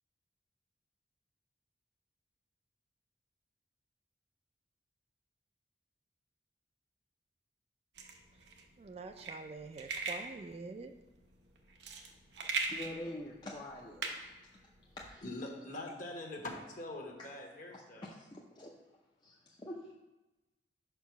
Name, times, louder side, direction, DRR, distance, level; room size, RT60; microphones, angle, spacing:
sound 1, 8.0-15.1, right 3 dB, 75° right, 0.8 m, -41 dB
voice 1, 8.8-10.9, right 4 dB, 35° right, 7 dB, 0.4 m, -46 dB
voice 2, 12.7-14.4 14.9-15.2 17.2-17.3 17.7-18.7 19.2-19.9, left 1 dB, 25° left, -2 dB, 0.6 m, -46 dB
voice 3, 15.2-18.1, left 1 dB, 50° left, 1 dB, 1.2 m, -43 dB
5.1 x 4.5 x 5.8 m, 1.0 s
head